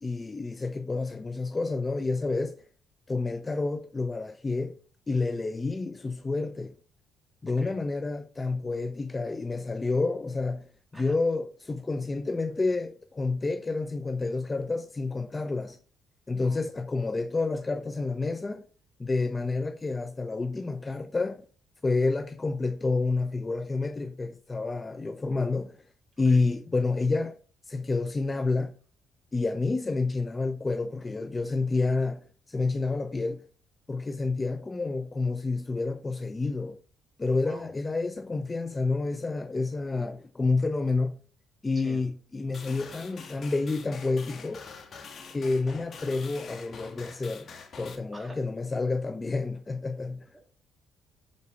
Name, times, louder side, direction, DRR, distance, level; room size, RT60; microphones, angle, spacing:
voice 1, 0.0-2.6 3.1-4.8 5.1-6.7 7.4-10.7 10.9-15.8 16.3-18.6 19.0-21.4 21.8-25.8 26.2-27.3 27.7-28.7 29.3-33.4 33.9-36.8 37.2-41.2 41.6-44.6 45.3-47.5 47.8-50.3, left 3 dB, 25° left, 0.6 m, -29 dB
voice 2, 41.7-42.0 48.1-48.4 50.3-50.5, right 1 dB, 15° right, 2.7 m, -47 dB
sound 1, 42.5-48.0, left 5 dB, 55° left, 1.7 m, -45 dB
8.4 x 4.1 x 4.7 m
cardioid pair, 75°, 0 cm